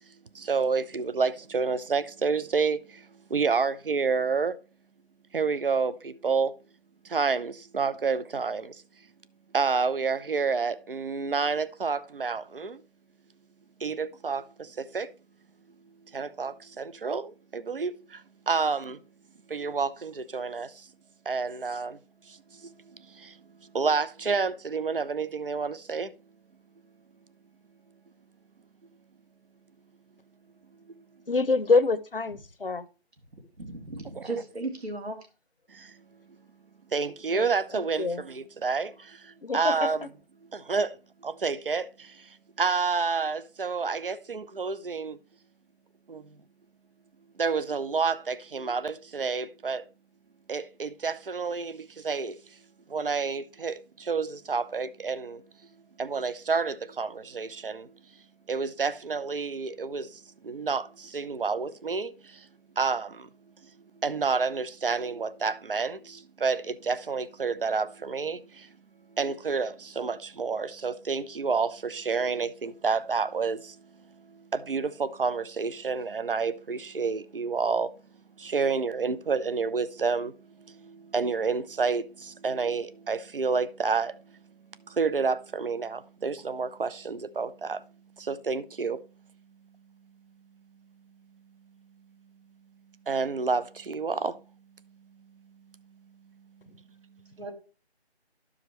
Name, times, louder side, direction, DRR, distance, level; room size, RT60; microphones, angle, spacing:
voice 1, 0.3-4.6 5.3-6.5 7.0-8.8 9.5-12.8 13.8-15.1 16.1-19.0 19.5-20.9 21.3-22.0 22.3-22.7 23.1-23.4 23.7-26.1 35.7-36.0 36.9-40.0 40.5-41.0 41.2-42.3 42.6-45.2 46.1-46.2 47.4-49.8 50.5-52.4 52.9-55.4 56.0-57.9 58.5-62.5 62.8-63.3 64.0-68.7 69.1-73.8 74.5-77.9 78.4-84.4 84.9-87.8 88.2-89.0 93.1-94.4, right 5 dB, 55° right, 0.6 m, -29 dB
voice 2, 31.3-32.9 37.3-37.5 37.7-38.2 39.4-40.1, left 4 dB, 55° left, 0.7 m, -26 dB
voice 3, 33.3-35.2 97.4-97.5, right 2 dB, 70° right, 2.8 m, -36 dB
12.5 x 4.9 x 3.1 m
figure-of-eight pair, 180°, 33 cm